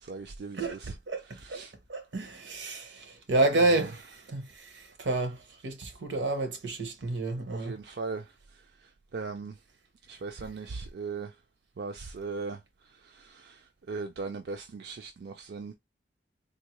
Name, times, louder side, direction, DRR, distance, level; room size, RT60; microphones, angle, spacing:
voice 1, 0.1-0.9 1.4-1.7 3.8-3.9 7.5-8.2 9.1-9.5 10.1-11.3 11.8-12.6 13.2-13.5 13.9-15.7, right 4 dB, 60° right, 0.4 m, -38 dB
voice 2, 1.9-4.0 4.3-4.4 5.0-7.8, right 2 dB, 80° right, 0.9 m, -29 dB
3.6 x 2.1 x 3.0 m
head